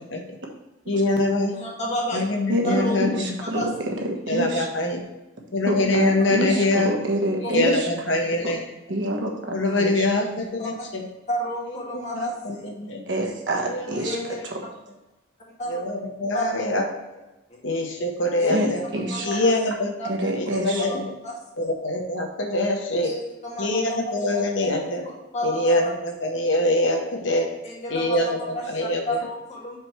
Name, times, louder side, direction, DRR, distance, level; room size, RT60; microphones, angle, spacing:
voice 1, 0.9-1.5 2.1-3.2 4.3-5.0 5.5-6.9 7.5-8.7 9.5-11.0 11.9-13.0 13.7-14.5 15.7-16.8 17.1-17.2 17.6-18.8 19.2-19.9 20.2-21.1 21.6-23.1 23.6-25.0 25.4-27.5 27.9-29.3, left 2 dB, 75° left, 2 dB, 1.1 m, -24 dB
voice 2, 1.5-2.2 2.6-3.0 3.4-3.7 7.4-7.5 10.6-10.8 11.3-12.7 14.0-14.4 15.6-15.8 16.3-16.5 17.5-17.6 18.4-18.5 19.1-19.5 20.0-20.1 20.7-21.0 21.2-21.3 23.0-24.4 25.0-25.9 27.6-28.2 28.5-29.8, equal, 35° left, -4 dB, 2.0 m, -31 dB
voice 3, 2.5-4.7 5.6-7.9 8.4-8.5 8.9-10.0 13.1-14.2 14.4-14.6 18.5-19.5 20.0-20.9, right 1 dB, 65° right, 0 dB, 1.3 m, -27 dB
5.0 x 4.5 x 6.1 m, 1.0 s
head